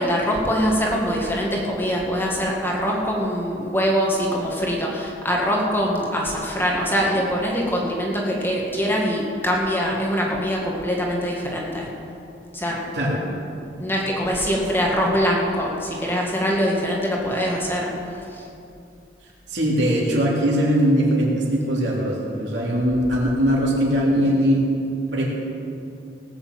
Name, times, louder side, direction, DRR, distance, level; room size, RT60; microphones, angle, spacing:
voice 1, 0.0-11.9 12.5-12.8 13.8-17.9 18.3-18.4, equal, 10° left, -2 dB, 1.9 m, -23 dB
voice 2, 19.5-24.6 25.1-25.4, equal, 70° right, -3 dB, 3.2 m, -20 dB
18.5 x 6.6 x 7.7 m, 2.6 s
head